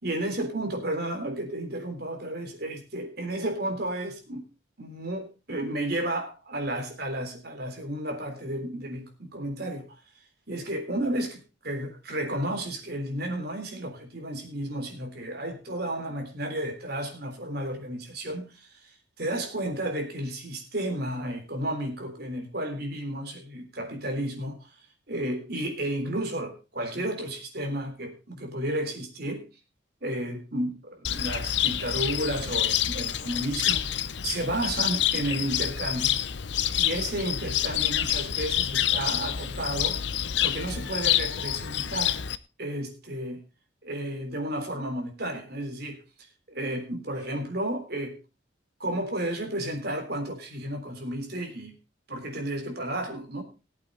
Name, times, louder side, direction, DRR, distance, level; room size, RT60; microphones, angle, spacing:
voice 1, 0.0-4.5 4.8-9.9 10.5-24.7 25.1-29.4 30.0-33.9 34.2-36.1 36.8-40.0 40.4-42.2 42.6-43.4 43.8-46.0 46.5-48.2 48.8-51.7 52.1-53.4, right 1 dB, 55° right, 3.5 m, -32 dB
Cricket, 31.0-42.3, left 11 dB, 65° left, 0.7 m, -27 dB
19.0 x 8.3 x 3.9 m
head